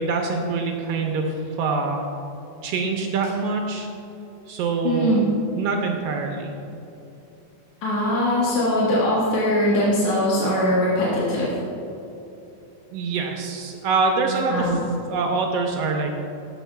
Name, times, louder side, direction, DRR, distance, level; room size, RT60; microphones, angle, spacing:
voice 1, 0.0-2.1 2.6-3.9 4.5-5.2 5.6-6.5 12.9-14.8 15.1-16.3, right 4 dB, 80° right, 2 dB, 1.5 m, -25 dB
voice 2, 4.8-5.3 7.8-11.6 14.5-14.8, equal, 60° left, -8 dB, 2.3 m, -21 dB
12.5 x 7.2 x 2.2 m, 2.9 s
omnidirectional pair, 3.3 m